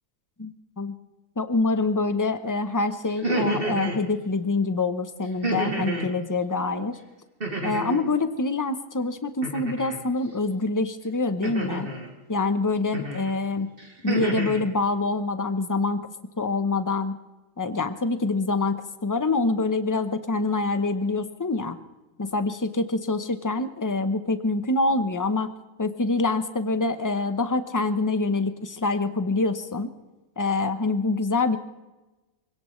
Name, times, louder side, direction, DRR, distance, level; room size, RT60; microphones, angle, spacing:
voice 1, 0.4-0.9 1.4-7.0 7.6-11.9 12.3-13.7 14.0-16.1 16.4-17.2 17.6-21.8 22.2-25.5 25.8-29.9 30.4-31.6, left 3 dB, 20° left, 10 dB, 0.7 m, -25 dB
sound 1, 3.1-4.0 5.4-6.1 7.4-8.1 9.4-10.0 11.4-12.1 12.9-13.3 13.8-14.6, right 2 dB, 40° right, 2.8 m, -29 dB
24.5 x 17.5 x 3.2 m, 1.1 s
omnidirectional pair, 1.5 m